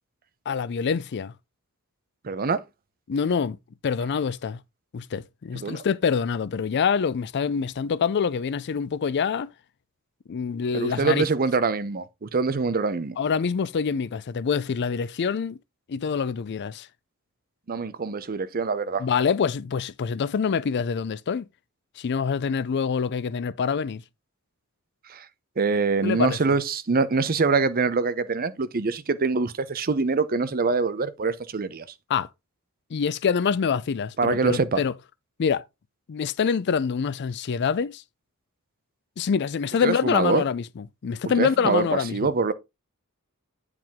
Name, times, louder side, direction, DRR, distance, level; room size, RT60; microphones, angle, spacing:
voice 1, 0.5-1.3 3.1-3.6 3.8-4.6 4.9-9.5 10.3-11.3 13.2-15.6 15.9-16.9 19.0-21.5 22.0-24.0 26.0-26.4 32.1-32.3 32.9-34.9 35.4-35.6 36.1-38.0 39.2-42.3, left 6 dB, 50° left, 0.4 m, -25 dB
voice 2, 2.2-2.6 5.5-5.8 10.7-13.2 17.7-19.1 25.1-25.3 25.6-31.8 34.2-34.8 39.8-40.4 41.4-42.5, right 4 dB, 45° right, 0.7 m, -24 dB
9.2 x 4.8 x 3.5 m
head